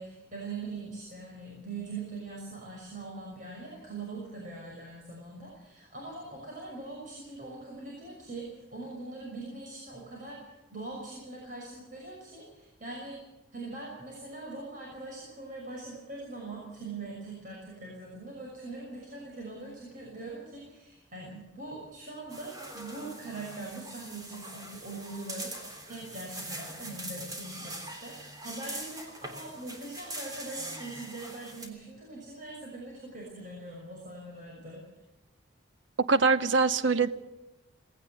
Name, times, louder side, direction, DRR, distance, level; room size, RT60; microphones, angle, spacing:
voice 1, 0.0-13.2 13.5-34.8, right 3 dB, 40° right, -2 dB, 6.2 m, -42 dB
sound 1, 22.3-31.7, right 1 dB, 20° right, 3.3 m, -42 dB
voice 2, 36.1-37.1, right 4 dB, 65° right, 13 dB, 1.0 m, -23 dB
19.0 x 17.5 x 8.0 m, 1.1 s
head